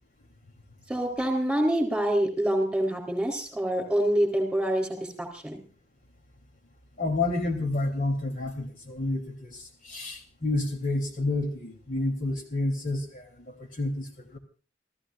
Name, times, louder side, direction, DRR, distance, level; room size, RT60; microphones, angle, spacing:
voice 1, 0.9-5.6, right 1 dB, 5° right, 4 dB, 4.1 m, -26 dB
voice 2, 7.0-14.4, left 2 dB, 45° left, 3 dB, 3.6 m, -30 dB
28.5 x 15.5 x 2.6 m, 0.37 s
head